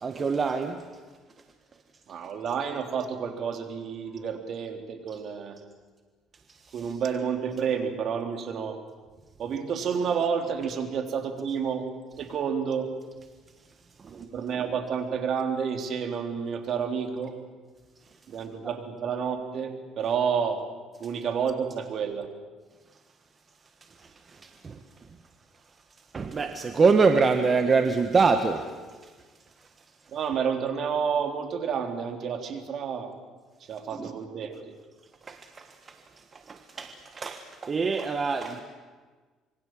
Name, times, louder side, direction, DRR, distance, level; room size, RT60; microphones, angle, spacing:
voice 1, 0.0-0.8 24.6-24.8 26.1-28.6 33.9-34.1 35.3-35.6 36.5-38.6, right 4 dB, 30° right, 7 dB, 1.5 m, -24 dB
voice 2, 2.1-5.6 6.7-8.8 9.4-11.9 12.2-12.9 14.0-17.3 18.3-20.6 21.0-22.3 30.1-33.1 33.6-34.7, right 6 dB, 55° right, 6 dB, 3.5 m, -30 dB
26.5 x 23.5 x 7.8 m, 1.4 s
cardioid pair, 115°, 0 cm